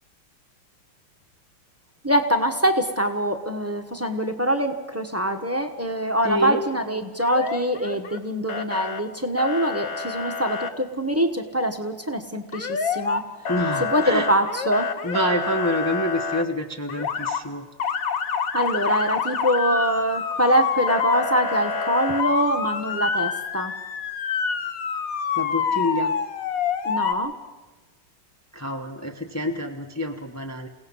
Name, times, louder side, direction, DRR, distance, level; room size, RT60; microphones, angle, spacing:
voice 1, 2.0-13.2 13.8-14.9 18.5-23.7 26.8-27.3, equal, 10° right, 6 dB, 0.9 m, -24 dB
voice 2, 6.2-6.6 13.5-14.3 15.0-17.6 25.4-26.1 28.5-30.7, equal, 20° left, 2 dB, 0.4 m, -27 dB
Motor vehicle (road) / Siren, 7.2-8.2 8.5-9.0 9.4-10.7 12.5-13.2 13.5-16.4 16.9-17.4 17.8-27.1, left 6 dB, 50° left, 1.2 m, -27 dB
29.0 x 17.5 x 5.6 m, 1.2 s
omnidirectional pair, 2.1 m